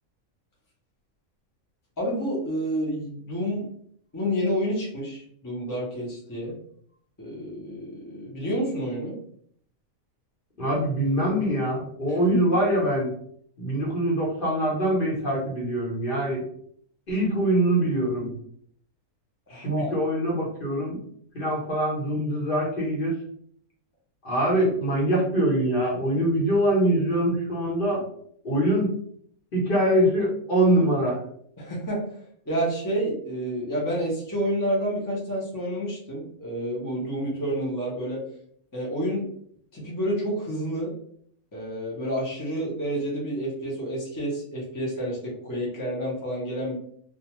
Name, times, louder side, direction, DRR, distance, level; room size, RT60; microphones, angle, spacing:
voice 1, 2.0-3.7 4.1-6.6 7.2-9.2 12.1-12.2 19.5-19.9 31.6-38.2 38.7-39.3 39.7-40.9 41.5-46.7, equal, 25° left, -5 dB, 0.4 m, -29 dB
voice 2, 10.6-13.1 13.6-16.5 17.1-18.3 19.5-21.0 21.3-23.2 24.2-28.0 28.4-28.9 29.5-31.2, right 1 dB, 45° left, -4 dB, 1.0 m, -24 dB
2.4 x 2.3 x 2.9 m, 0.64 s
omnidirectional pair, 1.5 m